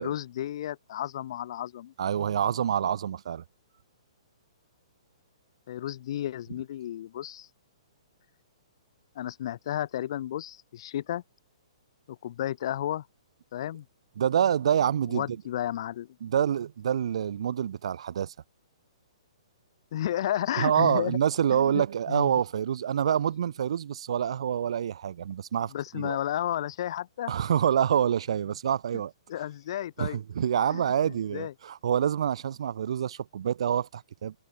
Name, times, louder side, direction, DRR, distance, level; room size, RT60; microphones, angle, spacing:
voice 1, 0.0-1.9 5.7-7.5 9.2-11.2 12.1-13.1 13.5-13.9 15.1-16.2 19.9-21.2 21.5-22.3 25.7-27.3 29.3-30.2 30.7-31.5, left 12 dB, 55° left, 2.0 m, -33 dB
voice 2, 2.0-3.4 14.2-15.3 16.2-18.3 20.6-26.2 27.3-29.1 30.0-34.3, right 9 dB, 65° right, 0.4 m, -27 dB
hypercardioid pair, 140°, 3 cm